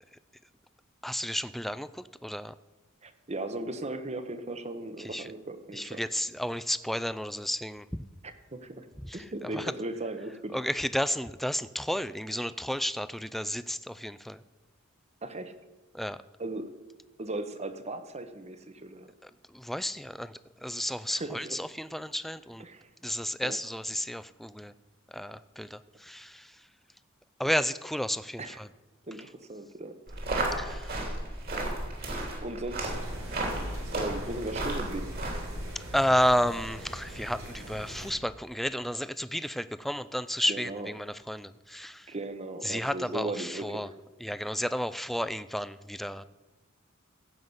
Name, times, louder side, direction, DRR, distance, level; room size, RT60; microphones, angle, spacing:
voice 1, 1.0-1.9 2.2-2.5 5.1-5.2 6.0-7.8 10.5-14.4 16.0-16.2 19.7-20.3 20.6-22.6 23.0-24.7 25.1-25.8 26.1-26.3 27.4-28.4 30.6-30.8 35.9-40.7 41.3-41.9 42.7-43.3 43.6-43.9 44.2-46.2, equal, ahead, 15 dB, 0.3 m, -31 dB
voice 2, 3.0-6.1 8.2-8.9 9.1-10.6 15.2-15.6 16.4-16.7 17.2-19.1 21.1-21.6 22.6-22.9 23.4-23.6 28.4-28.6 29.1-30.0 30.4-30.7 31.5-31.7 32.4-33.1 33.9-35.2 40.4-40.9 42.1-43.9, right 2 dB, 35° right, 9 dB, 1.0 m, -37 dB
sound 1, 30.1-35.6, right 1 dB, 50° right, 3.3 m, -33 dB
sound 2, 32.8-38.1, right 1 dB, 85° right, 4.3 m, -42 dB
16.0 x 5.7 x 7.9 m, 1.1 s
head